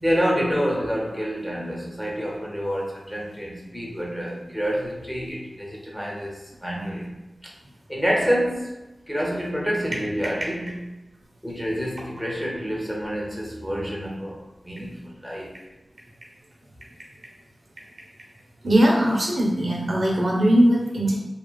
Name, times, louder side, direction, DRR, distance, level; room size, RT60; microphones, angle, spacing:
voice 1, 0.0-7.2 7.4-7.5 7.9-8.8 9.1-10.7 11.4-15.5, equal, 5° left, -3 dB, 0.7 m, -27 dB
voice 2, 18.6-21.1, equal, 65° right, -3 dB, 0.7 m, -20 dB
2.9 x 2.7 x 2.2 m, 1.0 s
wide cardioid pair, 80°, 0 cm